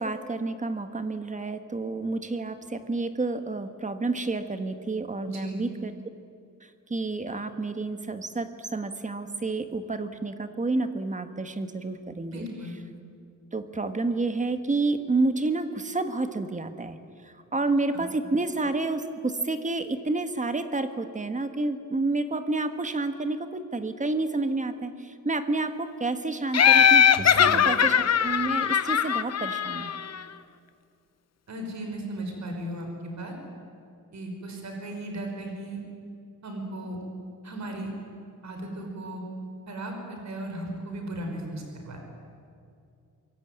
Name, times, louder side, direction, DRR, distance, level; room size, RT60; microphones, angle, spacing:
voice 1, 0.0-5.9 6.9-12.5 13.5-17.0 17.2-29.9, right 3 dB, 20° right, 9 dB, 1.4 m, -29 dB
voice 2, 5.3-5.6 12.3-12.7 17.9-18.0 27.1-27.6 31.5-33.3 34.1-35.8 36.4-37.0 37.4-37.9 38.4-39.2 39.7-42.0, right 1 dB, 55° right, 3 dB, 5.4 m, -36 dB
Laughter, 26.5-30.2, left 8 dB, 50° left, 0.8 m, -20 dB
25.0 x 22.5 x 9.4 m, 2.5 s
wide cardioid pair, 180°, 33 cm